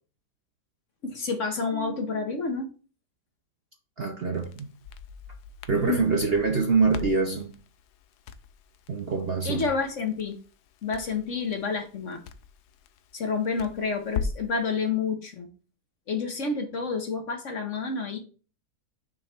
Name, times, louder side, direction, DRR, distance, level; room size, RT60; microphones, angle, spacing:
voice 1, 1.0-2.7 5.7-6.1 9.4-10.4 10.8-12.2 13.1-15.5 16.1-18.2, left 4 dB, 50° left, 1.2 m, -29 dB
voice 2, 4.0-4.7 5.7-7.5 8.9-9.7, right 4 dB, 50° right, 0.8 m, -25 dB
Crackle, 4.3-14.6, left 5 dB, 80° left, 1.2 m, -40 dB
6.3 x 3.2 x 5.7 m
omnidirectional pair, 1.8 m